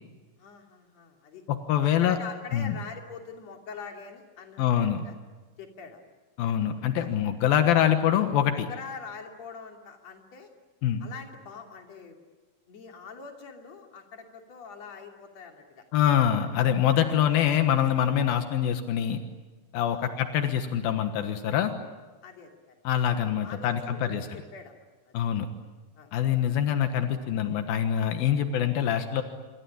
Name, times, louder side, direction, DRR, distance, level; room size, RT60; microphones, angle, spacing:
voice 1, 0.4-1.4 1.8-5.1 5.6-6.0 7.0-7.2 8.5-10.5 11.0-12.2 12.7-15.8 17.1-17.3 19.9-20.1 22.2-22.8 23.4-24.7 25.1-25.2 26.0-26.1, left 5 dB, 50° left, 3 dB, 3.9 m, -44 dB
voice 2, 1.5-2.2 2.5-2.8 4.6-5.0 6.4-8.7 10.8-11.1 15.9-19.2 19.7-21.7 22.8-24.3 25.1-25.5 26.1-29.2, left 10 dB, 85° left, 7 dB, 3.2 m, -25 dB
27.0 x 24.5 x 8.7 m, 1.3 s
omnidirectional pair, 4.2 m